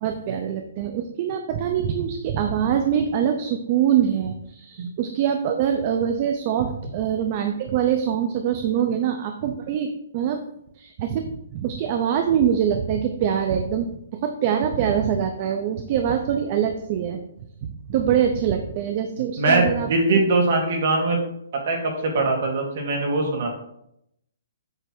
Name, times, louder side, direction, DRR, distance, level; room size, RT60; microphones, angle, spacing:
voice 1, 0.0-10.4 10.8-17.2 17.6-20.2, right 8 dB, 30° right, 6 dB, 0.5 m, -24 dB
voice 2, 19.4-21.2 21.7-23.5, right 2 dB, 45° right, 2 dB, 1.9 m, -21 dB
8.1 x 3.3 x 6.0 m, 0.76 s
hypercardioid pair, 170°, 0 cm